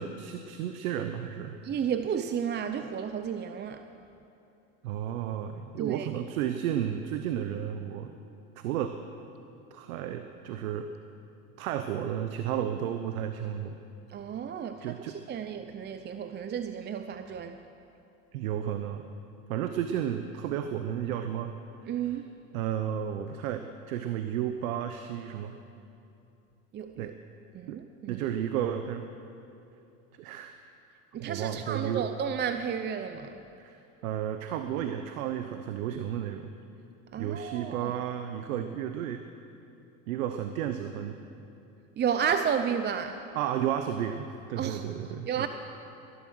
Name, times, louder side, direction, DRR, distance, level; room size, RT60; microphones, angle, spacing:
voice 1, 0.0-1.6 4.8-8.1 8.6-9.0 9.7-10.9 11.6-13.8 14.8-15.1 18.3-19.0 19.5-21.5 21.8-22.2 22.5-25.6 27.0-27.1 27.7-27.8 28.1-29.0 30.2-30.5 31.2-32.1 33.6-36.5 37.2-39.2 40.1-41.2 43.3-45.5, right 10 dB, 80° right, 8 dB, 0.9 m, -32 dB
voice 2, 1.6-3.9 5.8-6.1 14.1-17.6 21.9-22.3 26.7-27.1 27.5-28.2 31.1-33.4 37.1-37.9 42.0-43.2 44.6-44.8 45.3-45.5, right 8 dB, 25° right, 9 dB, 0.6 m, -32 dB
19.0 x 11.5 x 6.3 m, 2.8 s
supercardioid pair, 100°, 41 cm